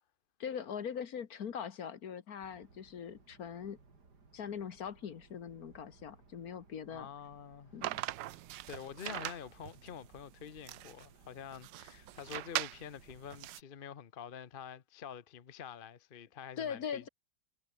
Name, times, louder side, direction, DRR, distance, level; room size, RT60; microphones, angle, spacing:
voice 1, 0.4-3.8 4.3-7.1 7.7-8.0 16.6-17.1, left 7 dB, 60° left, 1.6 m, -41 dB
sound 1, 2.4-13.6, right 4 dB, 65° right, 3.9 m, -63 dB
voice 2, 6.9-7.7 8.7-17.1, left 8 dB, 40° left, 0.8 m, -47 dB
sound 2, 7.8-13.6, right 15 dB, 90° right, 1.4 m, -41 dB
omnidirectional pair, 1.9 m